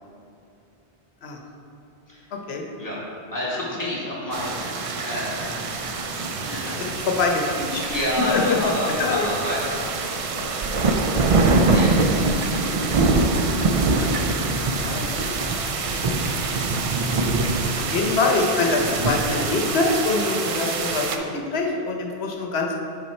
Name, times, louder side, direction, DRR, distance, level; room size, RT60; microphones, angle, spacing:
voice 1, 3.3-5.6 6.4-6.7 7.8-10.8 11.6-12.4, left 1 dB, 20° left, -8 dB, 1.7 m, -29 dB
sound 1, 4.3-21.2, right 3 dB, 55° right, 0.4 m, -24 dB
voice 2, 7.1-7.8 8.3-8.7 9.0-9.4 13.7-14.1 14.7-16.1 17.9-21.2 21.5-22.7, left 3 dB, 85° left, 1 dB, 1.0 m, -24 dB
5.7 x 5.6 x 4.3 m, 2.7 s
omnidirectional pair, 1.0 m